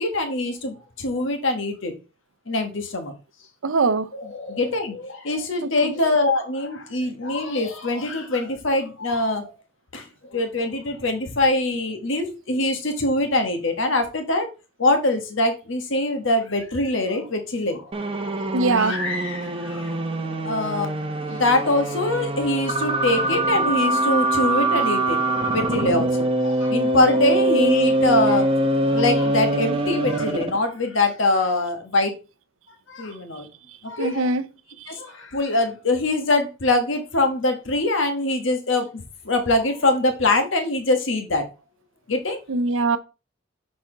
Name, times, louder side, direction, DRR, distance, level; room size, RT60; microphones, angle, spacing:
voice 1, 0.0-1.9 2.5-3.1 4.2-9.5 9.9-10.0 10.3-14.5 14.8-17.9 18.7-20.0 20.4-20.9 21.3-28.5 28.8-32.1 32.9-33.5 33.8-34.3 34.9-41.4 42.1-42.4, left 2 dB, 70° left, 1.2 m, -23 dB
voice 2, 3.6-4.1 18.5-19.0 34.0-34.5 34.8-34.9 42.5-43.0, right 3 dB, 75° right, 0.5 m, -21 dB
sound 1, 17.9-30.6, right 2 dB, 25° right, 0.7 m, -23 dB
6.6 x 4.3 x 3.7 m
head